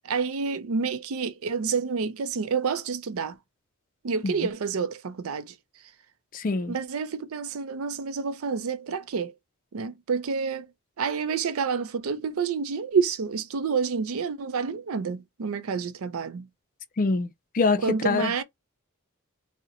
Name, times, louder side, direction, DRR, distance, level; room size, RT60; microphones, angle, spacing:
voice 1, 0.0-3.4 4.0-5.6 6.7-9.3 9.7-10.7 11.0-16.5 17.8-18.4, right 5 dB, 75° right, 0.5 m, -28 dB
voice 2, 6.3-6.8 17.0-18.3, left 4 dB, 40° left, 0.4 m, -25 dB
2.7 x 2.1 x 3.7 m
head